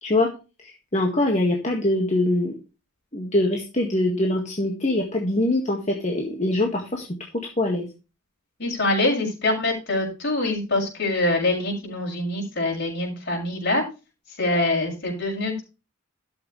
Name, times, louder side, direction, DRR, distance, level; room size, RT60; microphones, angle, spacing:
voice 1, 0.6-2.5 3.1-7.1 7.6-7.9, left 1 dB, 35° left, 1 dB, 1.9 m, -23 dB
voice 2, 8.6-13.8 14.4-15.6, left 2 dB, 55° left, 0 dB, 6.4 m, -24 dB
12.5 x 8.1 x 3.2 m, 0.29 s
head